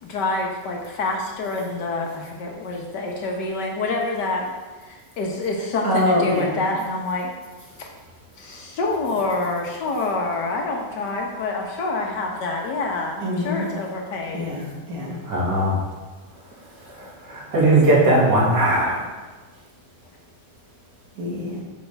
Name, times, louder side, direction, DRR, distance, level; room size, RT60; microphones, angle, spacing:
voice 1, 0.0-4.5 4.8-7.3 7.8-7.9 8.4-14.4, left 2 dB, 80° left, 1 dB, 1.8 m, -27 dB
voice 2, 5.8-6.6 13.2-13.7 14.3-15.2 17.6-18.0 21.2-21.6, equal, 55° right, -3 dB, 2.2 m, -25 dB
voice 3, 15.2-15.8 16.8-19.1, right 1 dB, 85° right, -5 dB, 3.0 m, -19 dB
9.7 x 6.1 x 3.4 m, 1.3 s
omnidirectional pair, 1.8 m